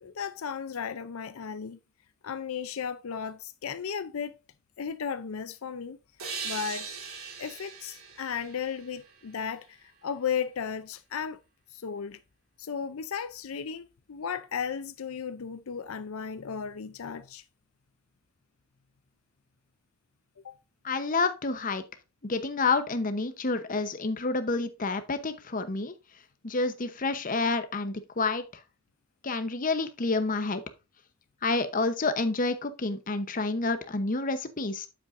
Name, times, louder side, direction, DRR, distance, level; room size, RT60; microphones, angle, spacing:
voice 1, 0.0-1.8 2.2-4.4 4.8-6.0 6.4-6.9 7.4-11.4 11.7-12.2 12.6-17.4 20.4-20.6, left 7 dB, 85° left, 0.5 m, -35 dB
sound 1, 6.2-9.7, right 5 dB, 85° right, 3.0 m, -40 dB
voice 2, 20.8-21.8 22.2-25.9 26.4-28.4 29.2-30.6 31.4-34.9, left 3 dB, 40° left, 0.9 m, -29 dB
8.6 x 7.5 x 2.6 m
head